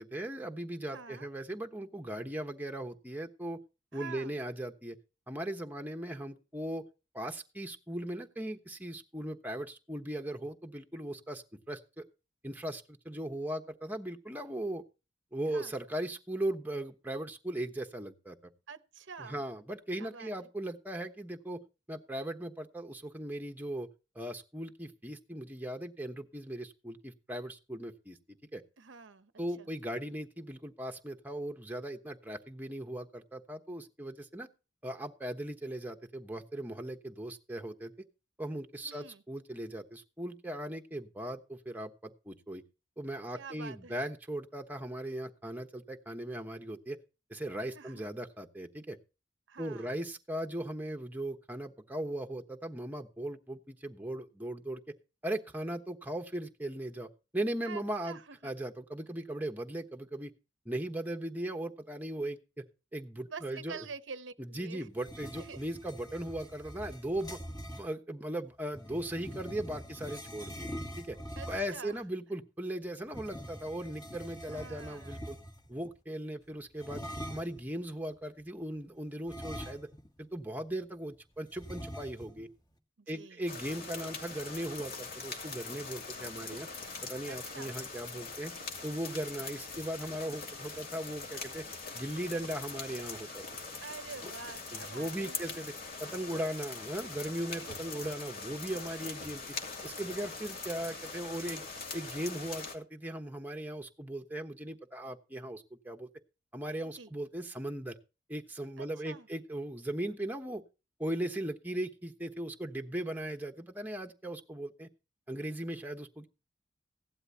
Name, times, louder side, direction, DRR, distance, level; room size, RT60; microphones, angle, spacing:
voice 1, 0.0-3.6 3.9-5.0 5.3-6.8 7.1-12.0 12.4-14.8 15.3-18.5 19.2-21.6 21.9-23.9 24.1-28.2 28.5-28.6 29.4-34.5 34.8-37.9 38.4-42.6 43.0-47.0 47.3-49.0 49.6-54.8 55.2-60.3 60.6-62.6 62.9-63.8 64.4-67.4 67.7-70.7 71.0-71.2 71.5-75.4 75.7-77.0 77.3-79.9 80.2-82.5 83.1-86.7 87.0-88.5 88.8-91.6 91.9-93.4 94.7-95.7 96.0-99.4 99.8-101.6 101.9-106.1 106.5-108.0 108.3-110.6 111.0-114.9 115.3-116.3, right 1 dB, 10° right, 1.1 m, -38 dB
voice 2, 0.9-1.3 3.9-4.4 15.5-15.7 18.7-19.4 20.0-20.3 28.8-29.3 29.6-29.7 38.8-39.2 43.3-44.0 47.7-48.1 49.5-50.0 57.6-58.5 63.3-64.9 65.4-65.6 71.4-72.0 74.4-75.3 83.0-83.4 87.3-87.7 93.8-95.4 106.9-107.1 108.8-109.3, right 5 dB, 85° right, 0.9 m, -47 dB
sound 1, 65.0-67.9 68.7-71.9 73.1-75.7 76.8-77.6 79.3-80.2 80.5-80.6 81.6-82.4, equal, 20° left, 1.9 m, -44 dB
sound 2, 83.5-102.8, left 4 dB, 55° left, 2.7 m, -42 dB
16.5 x 12.0 x 2.9 m
head